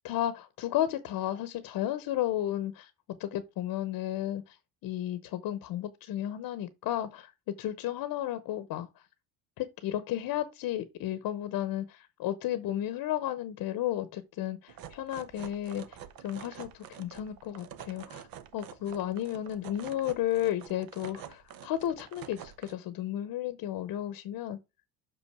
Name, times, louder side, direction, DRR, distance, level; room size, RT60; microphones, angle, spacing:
voice 1, 0.0-2.9 3.2-4.6 4.8-8.9 9.6-16.0 16.2-18.3 18.5-24.6, left 12 dB, 60° left, 0.9 m, -33 dB
sound 1, 14.7-22.7, right 10 dB, 60° right, 1.0 m, -47 dB
6.0 x 5.5 x 4.7 m
cardioid pair, 125°, 39 cm